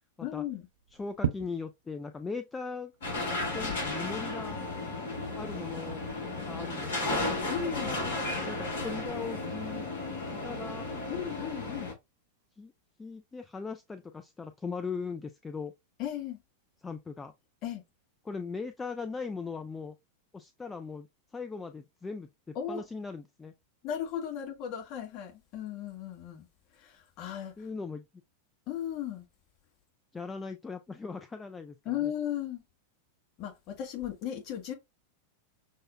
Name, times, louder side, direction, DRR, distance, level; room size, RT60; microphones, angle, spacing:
voice 1, 0.2-0.7 7.5-7.9 11.1-11.9 16.0-16.4 17.6-17.8 22.5-22.8 23.8-26.5 26.8-27.5 28.7-29.2 31.8-32.6 33.4-34.7, left 10 dB, 40° left, 1.3 m, -36 dB
sound 1, 0.6-17.7, right 9 dB, 65° right, 0.5 m, -46 dB
voice 2, 1.0-2.9 3.5-4.6 5.3-6.0 6.5-7.2 7.6-8.0 8.4-9.9 10.4-10.9 12.6-12.7 13.0-15.7 16.8-17.3 18.3-20.0 20.3-21.1 21.3-23.5 27.6-28.0 30.1-32.1, left 4 dB, 15° left, 0.3 m, -39 dB
sound 2, 3.0-11.9, left 2 dB, 60° left, 1.1 m, -34 dB
6.2 x 2.1 x 2.4 m
figure-of-eight pair, 90°, 0 cm